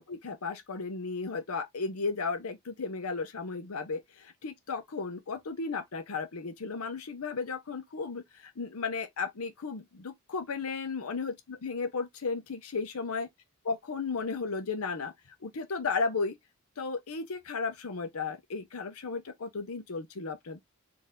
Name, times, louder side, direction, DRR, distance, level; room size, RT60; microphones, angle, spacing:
voice 1, 0.0-13.3 13.6-15.1 15.4-16.4 16.8-20.6, left 4 dB, 75° left, 0.7 m, -34 dB
4.4 x 2.6 x 3.5 m
head